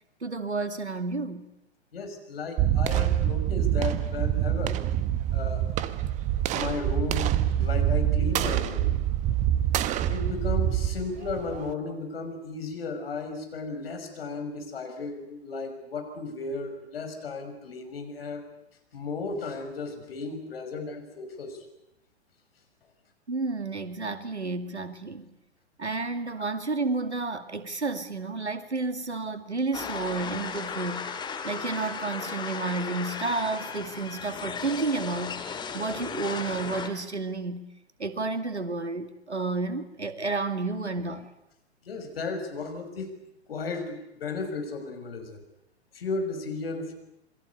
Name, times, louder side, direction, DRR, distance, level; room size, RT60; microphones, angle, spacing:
voice 1, 0.2-1.5 23.3-25.3 25.8-37.7 38.0-41.3, right 3 dB, 80° right, 2.4 m, -31 dB
voice 2, 1.9-4.8 5.3-5.6 6.5-8.9 10.1-18.5 18.9-21.6 41.8-43.1 43.5-45.4 45.9-46.9, left 4 dB, 60° left, 5.9 m, -34 dB
sound 1, 2.6-11.7, right 11 dB, 20° right, 1.0 m, -26 dB
sound 2, 29.7-36.9, left 6 dB, 15° left, 2.2 m, -36 dB
28.0 x 22.0 x 8.3 m
figure-of-eight pair, 110°, 33 cm